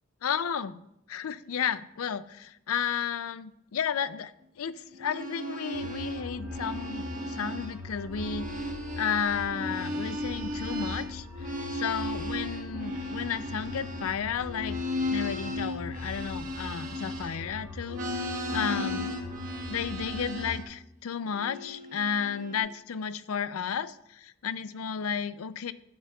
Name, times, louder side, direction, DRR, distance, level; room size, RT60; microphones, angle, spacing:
voice 1, 0.2-0.8 1.1-4.3 4.6-14.8 15.1-19.1 19.7-25.7, left 7 dB, 80° left, 15 dB, 0.4 m, -33 dB
sound 1, 4.9-7.8 8.0-17.5 17.9-20.7 21.3-22.6, left 1 dB, 35° right, 1.5 m, -35 dB
sound 2, 5.7-20.7, left 2 dB, 20° right, 4.1 m, -42 dB
12.0 x 9.4 x 2.4 m, 0.79 s
head